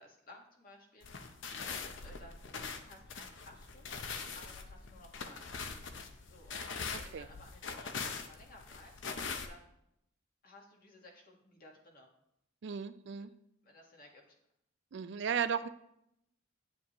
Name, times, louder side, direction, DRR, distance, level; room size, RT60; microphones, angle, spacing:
voice 1, 0.0-2.4 2.8-5.4 6.3-9.0 9.5-9.7 10.4-12.1 13.6-14.4, left 1 dB, 45° left, 0 dB, 1.6 m, -57 dB
sound 1, 1.0-9.5, left 5 dB, 65° left, 0.7 m, -42 dB
voice 2, 12.6-13.3 14.9-15.7, right 7 dB, 60° right, 12 dB, 0.4 m, -35 dB
9.4 x 7.2 x 3.0 m, 0.77 s
head